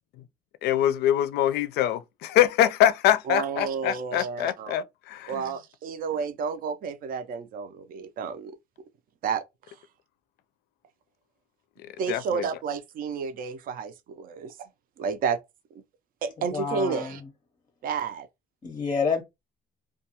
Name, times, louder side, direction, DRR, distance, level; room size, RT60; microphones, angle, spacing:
voice 1, 0.6-5.4 12.1-12.5, left 11 dB, 75° left, 0.4 m, -24 dB
voice 2, 3.3-4.7 5.3-8.5 9.2-9.4 12.0-14.7 15.0-15.4 16.2-17.2 17.8-18.3, right 6 dB, 55° right, 0.5 m, -31 dB
voice 3, 16.5-17.2 18.6-19.2, left 5 dB, 25° left, 0.5 m, -28 dB
2.3 x 2.2 x 2.8 m
cardioid pair, 110°, 17 cm